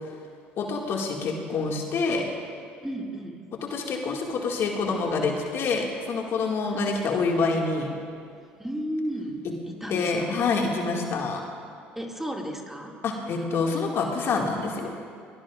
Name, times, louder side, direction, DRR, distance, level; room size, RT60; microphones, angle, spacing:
voice 1, 0.6-2.2 3.7-7.9 9.9-11.4 13.0-14.9, left 4 dB, 55° left, 0 dB, 2.1 m, -26 dB
voice 2, 2.8-3.4 6.6-6.8 8.6-10.4 12.0-12.9, equal, 5° right, 0 dB, 2.3 m, -34 dB
23.0 x 19.0 x 2.5 m, 2.3 s
hypercardioid pair, 65°, 5 cm